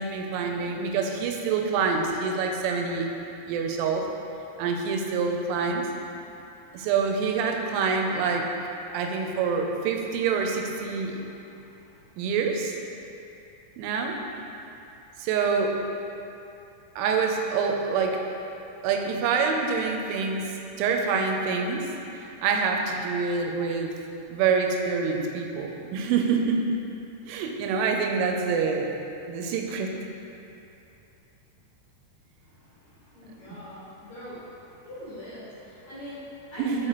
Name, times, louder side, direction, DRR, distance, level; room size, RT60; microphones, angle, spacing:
voice 1, 0.0-3.1 3.5-4.1 4.6-5.9 6.7-8.5 8.9-11.2 12.2-12.7 13.8-14.2 15.2-15.8 17.0-18.2 18.8-20.5 20.8-23.9 24.3-26.8 27.3-29.0 29.3-29.9 36.6-36.9, right 5 dB, 85° right, 3 dB, 3.0 m, -26 dB
voice 2, 6.2-6.9 11.0-12.0 32.4-36.9, equal, 75° left, -13 dB, 1.6 m, -44 dB
6.4 x 5.1 x 2.9 m, 2.9 s
omnidirectional pair, 5.4 m